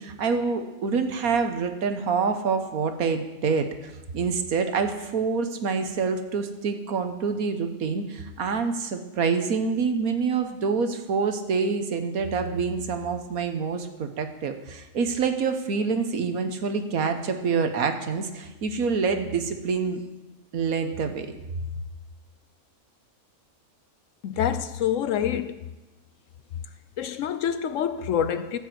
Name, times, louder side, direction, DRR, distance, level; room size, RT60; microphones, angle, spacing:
voice 1, 0.0-20.0 20.5-21.4, right 5 dB, 75° right, 1.5 m, -26 dB
voice 2, 24.2-25.6 27.0-28.6, left 9 dB, 65° left, 0.9 m, -26 dB
15.0 x 5.5 x 7.8 m
omnidirectional pair, 1.5 m